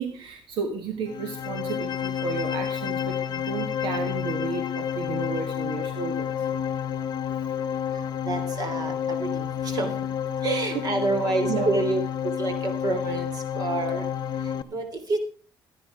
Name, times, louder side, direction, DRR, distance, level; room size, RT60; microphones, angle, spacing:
voice 1, 0.0-6.3 10.7-10.8 11.5-11.7, right 5 dB, 75° right, 6 dB, 1.6 m, -32 dB
sound 1, 1.1-14.6, left 8 dB, 50° left, 0.8 m, -29 dB
voice 2, 8.2-9.9 10.4-13.3 13.5-14.1 14.7-15.2, right 3 dB, 50° right, 8 dB, 3.3 m, -28 dB
12.5 x 10.5 x 4.8 m, 0.40 s
cardioid pair, 105°, 9 cm